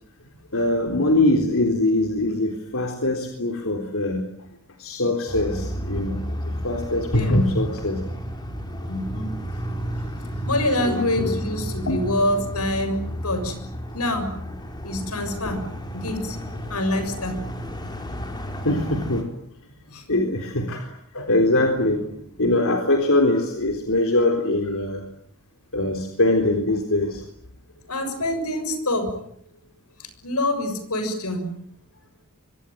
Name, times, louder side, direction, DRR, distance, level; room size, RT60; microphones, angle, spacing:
voice 1, 0.5-4.3 4.8-8.0 10.8-11.3 11.9-12.0 15.5-15.6 18.6-19.3 19.6-19.7 20.1-25.0 25.7-27.2, left 1 dB, 65° left, 4 dB, 3.8 m, -23 dB
sound 1, 5.3-19.2, equal, 20° left, 5.1 m, -32 dB
voice 2, 7.1-7.5 8.8-9.3 10.5-13.6 13.9-14.3 14.8-15.7 15.9-16.4 16.7-17.5 19.9-20.3 27.9-29.1 30.0-31.5, left 1 dB, 85° left, 9 dB, 6.8 m, -26 dB
25.0 x 24.5 x 9.2 m, 0.70 s
head